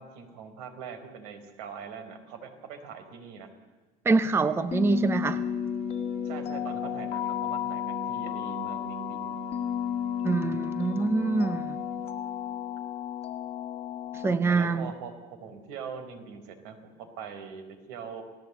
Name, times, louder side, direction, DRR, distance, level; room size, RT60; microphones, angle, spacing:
voice 1, 0.0-3.5 6.2-9.3 14.5-15.1 15.4-18.2, right 6 dB, 75° right, 8 dB, 4.4 m, -42 dB
voice 2, 4.0-5.4 10.2-11.8 14.2-14.9, right 3 dB, 15° right, 13 dB, 0.7 m, -25 dB
sound 1, 4.7-14.4, left 10 dB, 30° left, 1.6 m, -33 dB
sound 2, 4.7-12.8, right 12 dB, 45° right, 7.2 m, -44 dB
28.0 x 17.5 x 8.2 m, 1.4 s
cardioid pair, 150°, 19 cm